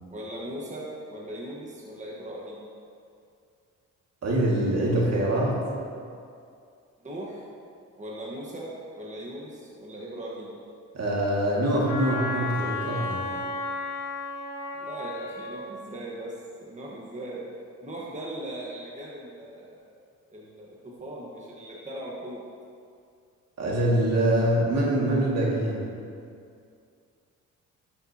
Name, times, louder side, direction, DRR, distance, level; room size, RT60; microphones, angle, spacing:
voice 1, 0.1-2.6 7.0-7.4 8.0-10.5 14.8-16.3 16.6-17.4 17.8-19.9 20.3-22.4, right 1 dB, 25° right, -4 dB, 1.5 m, -39 dB
voice 2, 4.2-5.7 10.9-13.3 23.6-25.8, right 1 dB, 55° right, -4 dB, 2.2 m, -24 dB
Wind instrument woodwind instrument, 11.9-15.7, left 3 dB, 70° left, 1.4 m, -33 dB
12.0 x 6.9 x 2.9 m, 2.4 s
cardioid pair, 90°, 30 cm